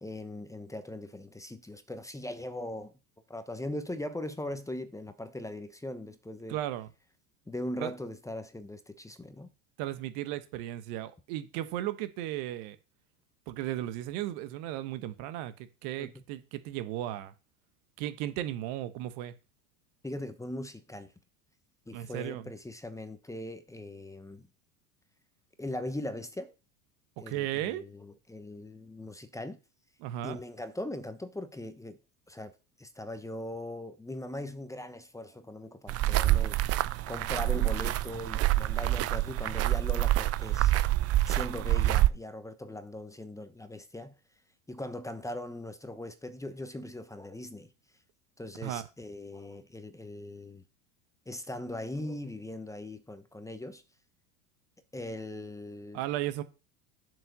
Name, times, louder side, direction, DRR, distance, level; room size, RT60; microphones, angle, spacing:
voice 1, 0.0-2.9 3.3-6.6 7.5-9.5 16.0-16.1 20.0-21.1 21.9-24.5 25.6-26.5 27.2-29.6 30.2-32.0 32.3-32.5 32.8-36.7 37.1-40.7 41.3-44.1 44.7-47.7 48.4-50.6 51.3-53.8 54.9-56.0, left 1 dB, 5° left, 0.9 m, -40 dB
voice 2, 6.5-6.9 7.8-7.9 9.8-12.8 13.5-17.3 18.0-19.3 21.9-22.4 27.2-27.8 30.0-30.4 48.6-48.8 55.9-56.4, right 13 dB, 60° right, 1.0 m, -35 dB
sound 1, 35.9-42.1, right 16 dB, 35° right, 0.5 m, -26 dB
7.6 x 4.9 x 6.7 m
hypercardioid pair, 90°, 43 cm